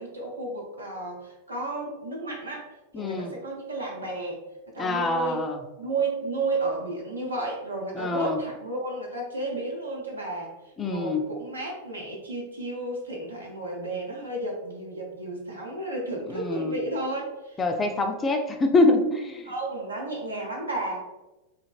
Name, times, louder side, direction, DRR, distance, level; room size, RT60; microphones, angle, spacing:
voice 1, 0.0-4.4 4.7-5.5 5.8-10.5 10.8-17.6 19.5-21.0, right 2 dB, 80° right, -2 dB, 0.7 m, -32 dB
voice 2, 2.9-3.3 4.8-5.6 8.0-8.4 10.8-11.2 16.3-16.8 17.6-19.5, left 2 dB, 20° left, 5 dB, 0.3 m, -25 dB
3.0 x 2.7 x 2.3 m, 1.0 s
figure-of-eight pair, 90°, 0 cm